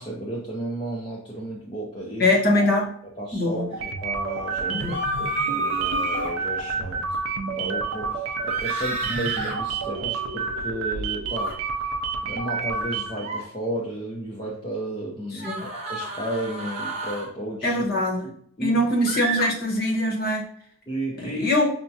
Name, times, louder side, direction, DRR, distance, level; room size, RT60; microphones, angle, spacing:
voice 1, 0.0-2.4 3.2-7.2 7.6-11.6 12.3-17.8 18.2-18.3 18.6-18.8 19.3-19.4 20.9-21.5, right 1 dB, 20° left, -4 dB, 0.5 m, -33 dB
voice 2, 2.2-2.9 3.3-3.7 4.7-5.0 15.4-15.6 17.6-18.3 18.6-20.5 21.2-21.7, left 1 dB, 45° left, -1 dB, 0.9 m, -22 dB
sound 1, 3.7-13.3, right 4 dB, 65° right, 0.4 m, -29 dB
sound 2, 4.8-6.3 8.5-9.5 11.3-11.5 13.1-13.4 15.4-17.3 19.1-19.4, right 2 dB, 30° right, 0.7 m, -30 dB
5.7 x 2.2 x 2.7 m, 0.63 s
head